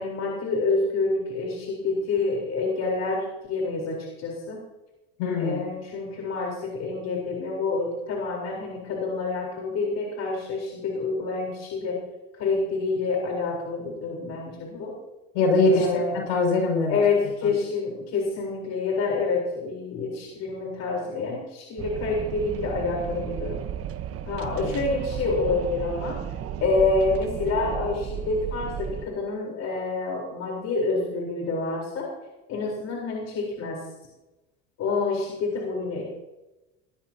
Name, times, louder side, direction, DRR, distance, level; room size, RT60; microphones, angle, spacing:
voice 1, 0.0-4.6 5.4-12.0 12.4-15.0 15.7-16.2 16.9-23.6 24.3-26.2 26.6-32.1 32.5-33.8 34.8-36.0, left 3 dB, 50° left, -2 dB, 4.1 m, -27 dB
voice 2, 5.2-5.7 15.3-16.0 16.3-17.0 17.4-17.5 24.6-24.7, left 2 dB, 75° left, 1 dB, 5.9 m, -22 dB
Wind, 21.8-29.1, right 9 dB, 45° right, 1.1 m, -34 dB
19.0 x 13.5 x 2.9 m, 1.0 s
hypercardioid pair, 80°, 33 cm